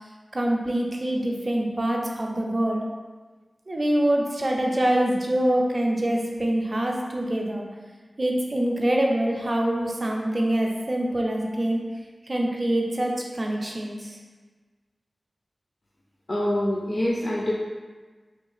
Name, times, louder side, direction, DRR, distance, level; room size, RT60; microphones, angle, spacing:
voice 1, 0.3-2.9 3.7-7.6 8.2-11.8 12.3-14.2, right 1 dB, 35° right, 0 dB, 0.5 m, -25 dB
voice 2, 16.3-17.5, left 1 dB, 50° left, -5 dB, 0.4 m, -25 dB
3.2 x 2.4 x 3.2 m, 1.4 s
wide cardioid pair, 85°, 0 cm